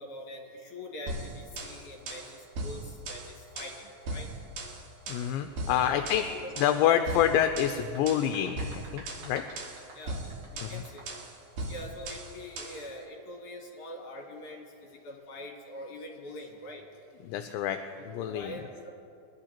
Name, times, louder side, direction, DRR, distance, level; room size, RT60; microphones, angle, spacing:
voice 1, 0.0-4.3 5.7-7.0 9.9-10.3 10.5-11.0 11.7-16.8 18.0-18.9, left 1 dB, 55° left, -1 dB, 3.2 m, -44 dB
sound 1, 1.1-12.9, right 2 dB, 75° right, 3.6 m, -39 dB
voice 2, 5.1-6.3 6.6-9.4 10.6-10.8 17.2-17.8 18.0-18.6, left 10 dB, 80° left, 7 dB, 2.2 m, -27 dB
sound 2, 7.8-11.3, right 2 dB, 60° right, 3.5 m, -51 dB
23.0 x 11.5 x 2.9 m, 2.5 s
omnidirectional pair, 4.2 m